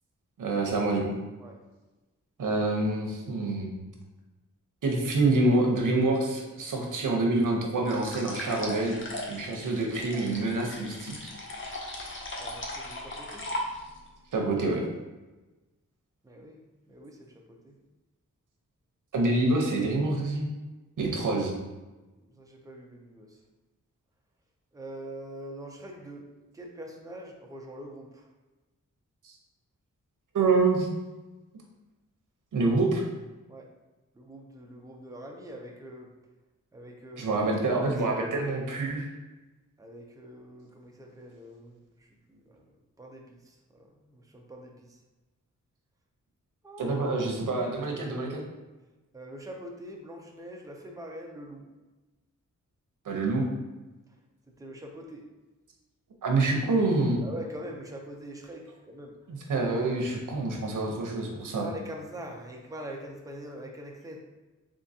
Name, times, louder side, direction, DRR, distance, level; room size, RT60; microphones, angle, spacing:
voice 1, 0.4-1.2 2.4-3.8 4.8-9.0 9.3-11.3 14.3-14.8 19.1-20.5 21.0-21.5 29.2-29.3 30.3-30.9 32.5-33.1 37.2-39.1 46.8-48.3 53.0-53.4 56.2-57.2 59.3-61.7, right 2 dB, 80° right, 1 dB, 0.8 m, -26 dB
sound 1, 7.8-14.1, left 1 dB, 40° left, 0.6 m, -38 dB
voice 2, 12.4-13.5 16.2-17.8 22.2-23.4 24.7-26.3 26.5-28.3 33.5-33.7 34.1-36.1 36.7-37.5 39.8-42.7 43.0-45.0 46.6-47.0 48.0-48.4 49.1-51.7 54.5-55.3 57.2-59.2 61.6-64.2, right 1 dB, 10° right, 0 dB, 0.4 m, -44 dB
3.7 x 3.3 x 2.7 m, 1.1 s
wide cardioid pair, 170°, 31 cm